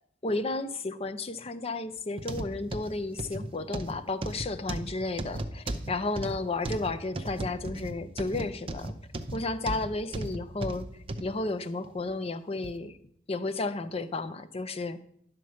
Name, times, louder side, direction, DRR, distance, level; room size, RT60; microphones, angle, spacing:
voice 1, 0.2-9.0 9.3-13.0 13.3-15.0, left 2 dB, 35° left, 10 dB, 0.6 m, -33 dB
sound 1, 2.2-11.3 11.8-12.0 12.6-12.7, right 1 dB, 30° right, 0.6 m, -36 dB
11.0 x 4.5 x 6.4 m, 0.67 s
head